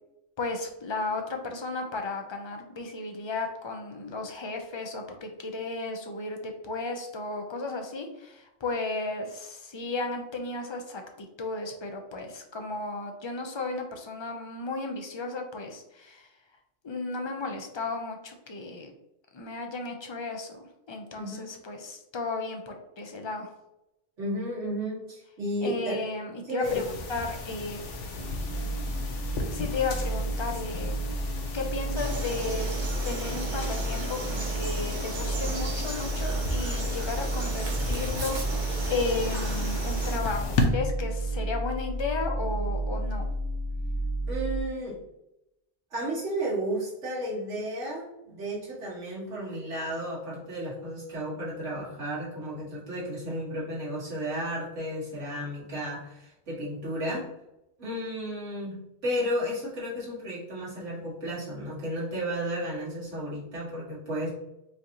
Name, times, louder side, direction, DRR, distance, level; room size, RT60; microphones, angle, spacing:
voice 1, 0.4-16.3 16.8-18.9 19.3-23.5 25.6-26.8 27.1-27.8 29.5-31.0 31.5-32.7 33.0-34.2 34.6-43.3, left 3 dB, 45° left, 3 dB, 0.3 m, -34 dB
voice 2, 21.2-21.5 24.2-26.0 26.4-26.9 44.3-45.0 45.9-57.3 57.8-64.3, equal, 85° right, -7 dB, 2.0 m, -33 dB
sound 1, 26.6-40.7, left 2 dB, 85° left, 1.0 m, -35 dB
sound 2, 28.2-44.6, right 1 dB, 65° right, 0.4 m, -31 dB
Frog, 31.9-40.2, right 2 dB, 45° right, 0.9 m, -37 dB
5.0 x 2.7 x 2.9 m, 0.87 s
omnidirectional pair, 1.2 m